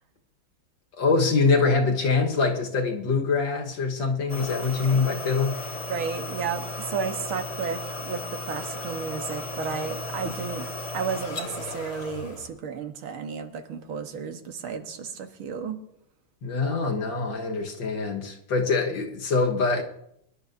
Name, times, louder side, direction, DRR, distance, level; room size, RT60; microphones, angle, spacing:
voice 1, 1.0-5.6 16.4-19.8, left 4 dB, 65° left, 2.1 m, -24 dB
sound 1, 4.3-12.5, left 2 dB, 35° left, 1.6 m, -35 dB
voice 2, 5.9-10.7 10.9-15.8, right 6 dB, 90° right, 2.0 m, -33 dB
24.5 x 11.0 x 2.6 m
omnidirectional pair, 2.2 m